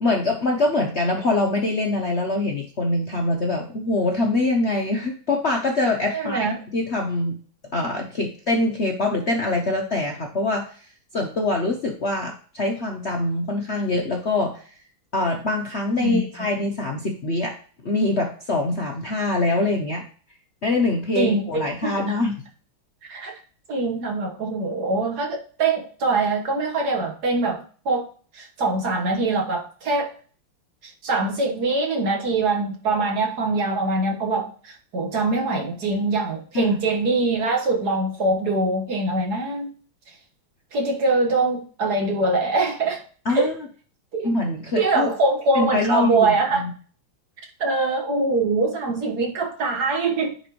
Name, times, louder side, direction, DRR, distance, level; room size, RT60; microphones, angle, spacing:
voice 1, 0.0-7.4 7.7-10.8 11.1-14.6 15.1-17.5 17.8-20.0 20.6-22.3 36.5-36.8 43.2-43.6 44.2-45.1 45.5-46.7, left 2 dB, 60° left, 1 dB, 0.6 m, -24 dB
voice 2, 6.1-6.5 16.0-16.3 21.2-21.9 23.1-23.4 23.7-28.1 28.3-30.1 30.8-39.7 40.7-43.0 43.3-43.5 44.1-44.3 44.8-46.6 47.6-50.3, right 3 dB, 50° right, 3 dB, 1.8 m, -23 dB
9.8 x 4.3 x 3.0 m, 0.42 s
omnidirectional pair, 2.4 m